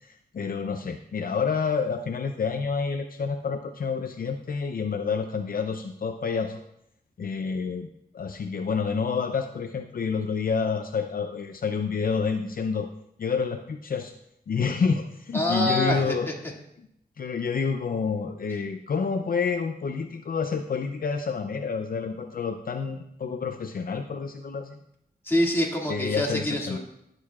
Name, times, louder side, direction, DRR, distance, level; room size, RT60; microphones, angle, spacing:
voice 1, 0.0-6.6 7.2-7.9 8.1-12.9 13.2-14.1 14.5-16.3 16.8-16.9 17.2-24.8 25.9-26.8, left 5 dB, 65° left, 6 dB, 0.6 m, -28 dB
voice 2, 15.3-16.3 25.3-26.8, left 1 dB, 15° left, -2 dB, 2.2 m, -25 dB
17.5 x 6.6 x 2.4 m, 0.76 s
wide cardioid pair, 95°, 16 cm